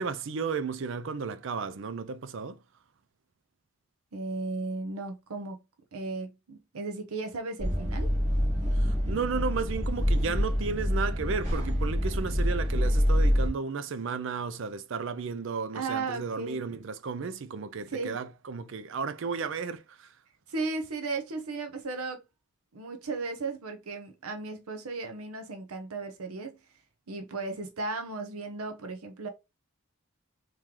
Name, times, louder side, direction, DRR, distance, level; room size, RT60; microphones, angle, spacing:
voice 1, 0.0-2.6 8.7-20.1, right 5 dB, 60° right, 0.4 m, -33 dB
voice 2, 4.1-5.6 5.9-8.1 15.7-16.6 17.9-18.2 20.5-22.2 22.7-26.6 27.1-29.3, right 3 dB, 85° right, 0.8 m, -35 dB
sound 1, 7.6-13.5, equal, 30° right, 1.1 m, -26 dB
3.7 x 3.1 x 3.0 m
head